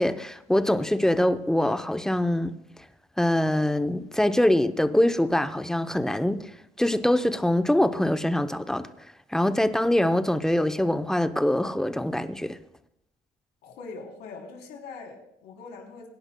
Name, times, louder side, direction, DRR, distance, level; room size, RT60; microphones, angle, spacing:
voice 1, 0.0-2.5 3.2-6.4 6.8-8.9 9.3-12.6, left 1 dB, 5° left, 0.6 m, -24 dB
voice 2, 13.6-16.1, left 4 dB, 80° left, 3.3 m, -42 dB
23.5 x 10.5 x 2.2 m
cardioid pair, 110°, 17 cm